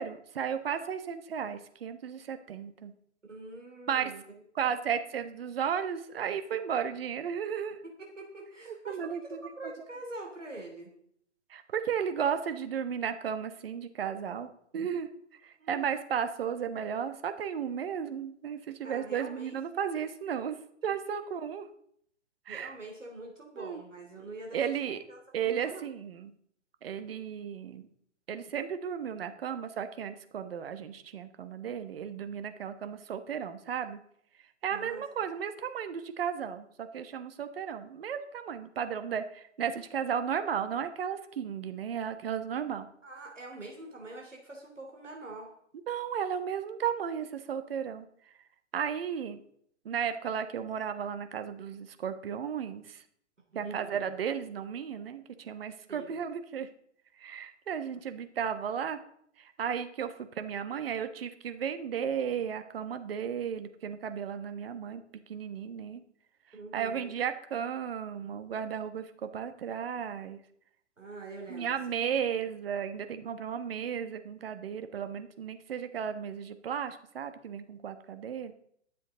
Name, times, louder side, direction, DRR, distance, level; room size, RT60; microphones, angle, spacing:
voice 1, 0.0-2.9 3.9-4.1 4.5-7.8 8.9-9.7 11.5-15.1 15.4-20.6 20.8-21.7 22.5-22.7 23.6-23.8 24.5-25.0 25.3-26.3 26.8-27.9 28.3-34.0 34.6-42.9 45.9-48.1 48.7-49.4 49.8-53.0 53.5-56.7 57.2-59.0 59.4-65.0 65.3-66.0 66.7-70.4 71.5-78.5, right 8 dB, 50° right, 9 dB, 1.2 m, -34 dB
voice 2, 3.3-4.2 7.8-10.9 15.6-15.8 18.8-19.8 22.5-24.6 25.1-25.9 34.7-35.0 43.0-45.5 53.5-54.1 55.9-56.2 66.5-67.2 71.0-71.7, right 2 dB, 80° right, 0 dB, 3.1 m, -45 dB
21.5 x 7.6 x 3.8 m, 0.67 s
figure-of-eight pair, 115°, 37 cm